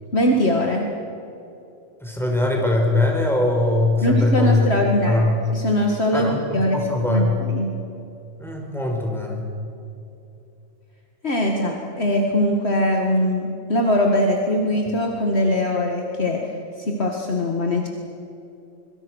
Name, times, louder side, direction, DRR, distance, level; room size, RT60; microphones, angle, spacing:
voice 1, 0.1-0.9 4.0-5.2 5.5-7.7 11.2-17.9, left 1 dB, 50° left, 1 dB, 2.3 m, -21 dB
voice 2, 2.0-5.4 6.1-7.4 8.4-9.5, left 2 dB, ahead, 0 dB, 5.1 m, -21 dB
25.0 x 24.5 x 6.5 m, 2.8 s
omnidirectional pair, 1.4 m